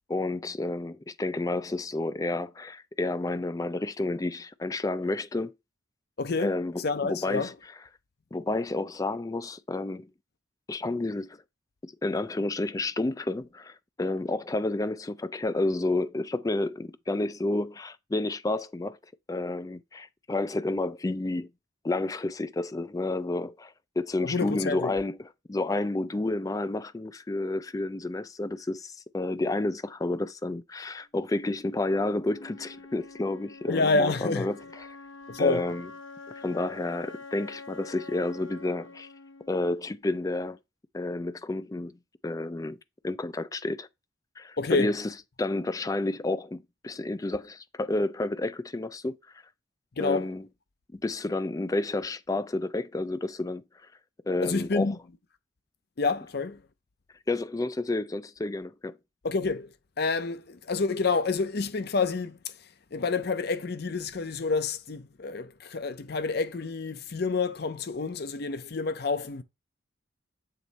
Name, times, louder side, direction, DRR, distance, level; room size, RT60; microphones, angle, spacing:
voice 1, 0.1-5.5 6.4-7.5 8.3-10.1 10.7-11.4 11.8-19.0 19.3-21.5 21.8-34.9 35.4-35.9 36.4-39.1 39.5-40.6 40.9-41.9 42.2-42.8 43.0-43.9 44.4-45.1 45.4-49.2 50.0-50.4 50.9-53.6 54.3-54.9 57.3-58.9, left 2 dB, 15° left, 0.3 m, -30 dB
voice 2, 6.2-7.5 24.2-24.9 33.7-34.5 35.3-35.6 44.6-44.9 50.0-50.3 54.4-55.0 56.0-56.6 59.2-59.7 60.0-62.4 62.9-69.4, left 4 dB, 55° left, 0.6 m, -28 dB
Wind instrument woodwind instrument, 32.3-40.3, left 3 dB, 80° left, 1.0 m, -46 dB
7.6 x 3.1 x 4.0 m
head